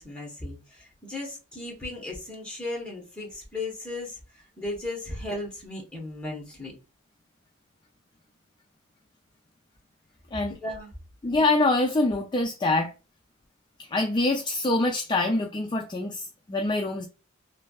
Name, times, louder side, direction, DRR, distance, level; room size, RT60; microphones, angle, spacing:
voice 1, 0.0-6.7 10.6-10.9, left 2 dB, 5° left, 1.1 m, -36 dB
voice 2, 11.2-12.9 13.9-17.1, left 2 dB, 20° left, 0.3 m, -25 dB
3.3 x 2.5 x 2.3 m
head